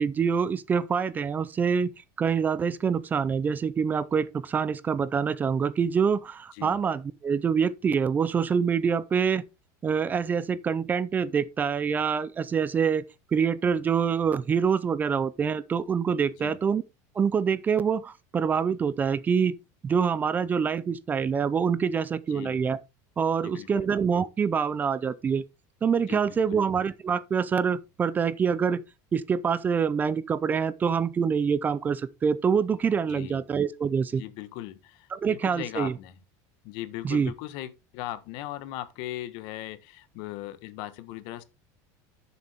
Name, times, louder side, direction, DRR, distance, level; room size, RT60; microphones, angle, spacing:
voice 1, 0.0-1.9 2.2-9.4 9.8-13.0 13.3-16.8 17.2-19.5 19.8-22.8 23.2-25.4 25.8-28.8 29.1-34.2 35.1-36.0 37.0-37.3, right 6 dB, 20° right, 0.5 m, -25 dB
voice 2, 23.4-23.9 26.1-26.2 26.5-26.7 33.1-33.4 34.2-36.1 36.6-41.4, left 14 dB, 60° left, 1.3 m, -38 dB
11.0 x 7.2 x 3.6 m
cardioid pair, 155°, 9 cm